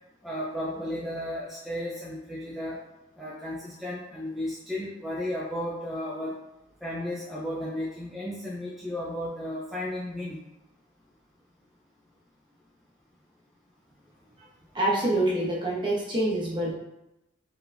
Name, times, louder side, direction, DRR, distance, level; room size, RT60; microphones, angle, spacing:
voice 1, 0.2-2.8 3.2-6.3 6.8-10.4, left 1 dB, ahead, -7 dB, 0.5 m, -34 dB
voice 2, 14.7-16.7, right 1 dB, 25° right, -6 dB, 1.2 m, -26 dB
4.5 x 3.9 x 2.7 m, 0.91 s
head